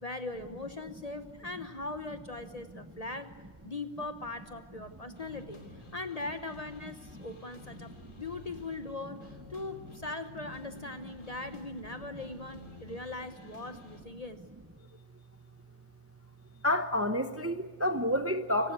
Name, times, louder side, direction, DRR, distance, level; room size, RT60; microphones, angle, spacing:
voice 1, 0.0-3.3 3.6-5.6 5.9-7.9 8.2-14.4, left 2 dB, 35° left, 9 dB, 0.9 m, -40 dB
sound 1, 4.8-14.0, left 2 dB, 80° left, 3.1 m, -52 dB
voice 2, 16.6-18.7, left 1 dB, 15° right, 8 dB, 0.7 m, -29 dB
26.0 x 16.5 x 8.2 m, 1.5 s
omnidirectional pair, 1.3 m